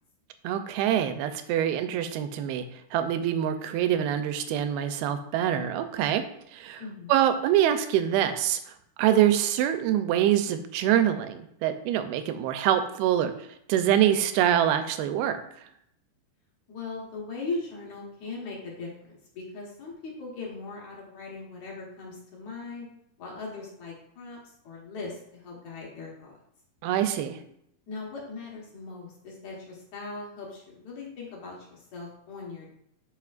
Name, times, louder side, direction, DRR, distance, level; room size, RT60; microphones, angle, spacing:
voice 1, 0.4-2.6 2.9-6.2 6.5-6.8 7.1-8.6 9.0-13.3 13.7-15.4 26.8-27.4, right 10 dB, 90° right, 9 dB, 2.5 m, -25 dB
voice 2, 6.8-7.2 16.7-22.9 23.2-24.4 24.6-26.3 27.9-32.7, left 3 dB, 60° left, -3 dB, 2.3 m, -39 dB
9.1 x 5.6 x 2.5 m, 0.74 s
omnidirectional pair, 4.4 m